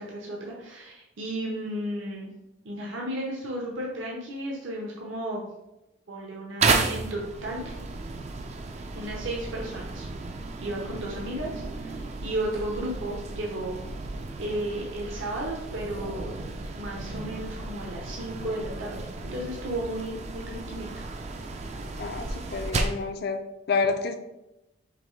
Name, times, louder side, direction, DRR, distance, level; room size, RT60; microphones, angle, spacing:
voice 1, 0.0-2.3 2.6-5.5 6.1-7.8 8.9-10.1 10.6-13.8 14.4-16.4 16.7-21.1, right 1 dB, 65° right, -2 dB, 0.7 m, -34 dB
sound 1, 6.6-23.1, right 3 dB, 30° right, 0.3 m, -33 dB
voice 2, 22.0-23.4 23.7-24.2, left 4 dB, 50° left, 7 dB, 0.4 m, -28 dB
5.0 x 3.1 x 3.1 m, 0.94 s
head